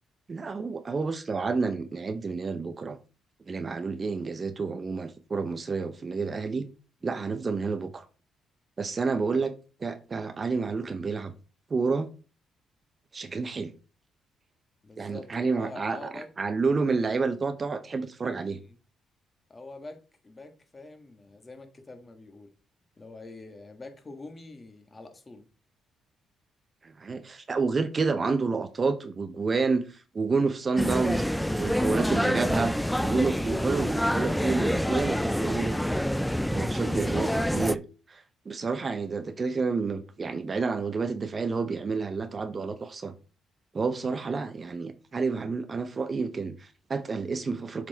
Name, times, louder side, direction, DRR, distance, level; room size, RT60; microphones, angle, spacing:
voice 1, 0.3-3.0 3.5-6.7 7.0-8.1 8.8-9.5 9.8-11.3 11.7-12.1 13.1-13.7 15.0-16.1 16.4-18.6 26.8-31.2 31.5-32.7 33.0-35.8 36.5-37.8 38.1-43.1 43.7-47.9, right 4 dB, 35° right, 0.7 m, -29 dB
voice 2, 14.8-16.3 18.7-18.8 19.5-22.5 23.0-25.5 43.9-44.2, left 2 dB, 25° left, 1.6 m, -45 dB
sound 1, 30.8-37.8, equal, 5° left, 0.3 m, -27 dB
7.3 x 4.4 x 4.0 m
cardioid pair, 90°, 0 cm